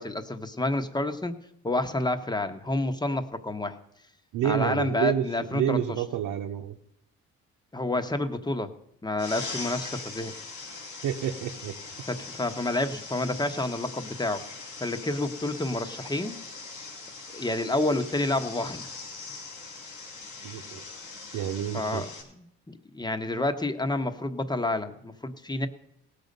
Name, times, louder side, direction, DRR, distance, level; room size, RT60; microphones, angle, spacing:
voice 1, 0.0-1.3 1.6-3.8 4.4-5.8 7.7-8.7 9.0-10.3 12.1-14.4 14.8-16.4 17.3-18.8 21.7-25.7, left 2 dB, 15° left, 8 dB, 1.1 m, -29 dB
voice 2, 4.3-6.8 11.0-11.7 20.4-20.8 21.3-22.0, right 9 dB, 85° right, 2 dB, 0.9 m, -29 dB
sound 1, 9.2-22.2, left 4 dB, 80° left, 3.9 m, -41 dB
18.0 x 6.8 x 5.3 m, 0.77 s
cardioid pair, 90°, 30 cm